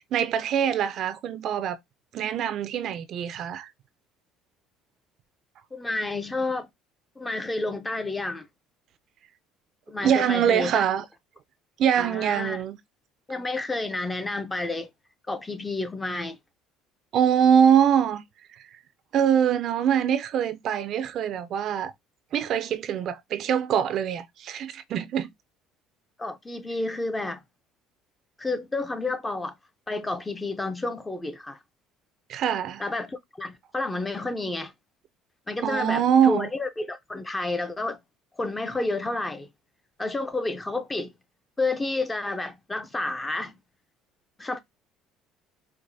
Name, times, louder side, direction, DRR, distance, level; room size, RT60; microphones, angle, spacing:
voice 1, 0.0-1.8 2.1-3.7 10.0-11.0 11.8-12.8 17.1-18.2 18.6-18.7 19.1-21.9 22.3-25.3 32.3-32.8 35.6-36.5, right 8 dB, 55° right, 0.4 m, -23 dB
voice 2, 5.7-6.7 7.2-8.5 9.9-10.8 12.0-12.6 13.3-14.9 15.3-16.4 26.2-27.4 28.4-29.5 29.9-31.6 32.8-34.7 35.5-38.0 38.4-39.5 40.0-41.1 41.6-43.6 44.4-44.6, left 2 dB, 15° left, 0.5 m, -30 dB
4.6 x 2.1 x 2.6 m
supercardioid pair, 100°, 0 cm